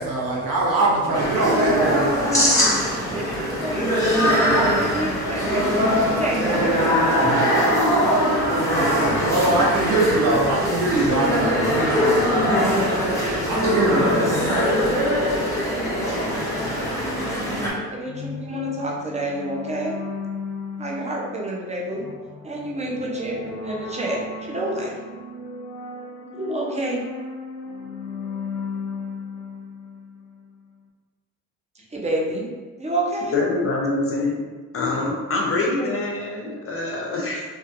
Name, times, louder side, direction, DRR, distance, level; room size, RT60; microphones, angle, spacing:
voice 1, 0.0-4.6 5.1-5.3 5.8-6.2 7.0-7.2 8.3-14.7, right 2 dB, 70° right, -5 dB, 0.9 m, -25 dB
sound 1, 1.1-17.7, equal, 10° left, 0.9 m, -21 dB
voice 2, 2.9-4.1 4.5-5.6 6.1-7.8 15.7-16.3 17.9-20.0 20.8-22.0 22.4-25.0 26.3-27.0 31.9-32.5 32.8-33.4 35.7-35.9, right 1 dB, 20° right, -2 dB, 0.7 m, -29 dB
sound 2, 18.1-30.6, left 4 dB, 80° left, 0.5 m, -35 dB
voice 3, 33.3-34.3 34.7-37.4, left 2 dB, 40° left, -2 dB, 0.6 m, -25 dB
2.5 x 2.4 x 2.5 m, 1.4 s
supercardioid pair, 65°, 35 cm